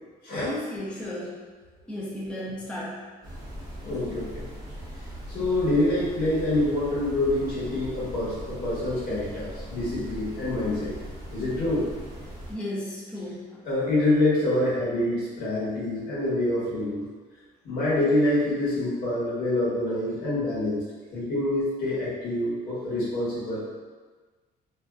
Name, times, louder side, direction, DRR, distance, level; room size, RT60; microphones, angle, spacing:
voice 1, 0.4-1.4 1.9-3.1 12.5-13.6, left 1 dB, 5° left, -6 dB, 0.5 m, -34 dB
sound 1, 3.2-12.5, equal, 25° right, 0.7 m, -39 dB
voice 2, 3.8-4.4 5.3-10.9 11.3-11.9 13.6-17.1 17.6-20.8 21.1-23.7, left 1 dB, 65° left, -9 dB, 1.1 m, -26 dB
2.5 x 2.1 x 2.3 m, 1.4 s
cardioid pair, 110°, 17 cm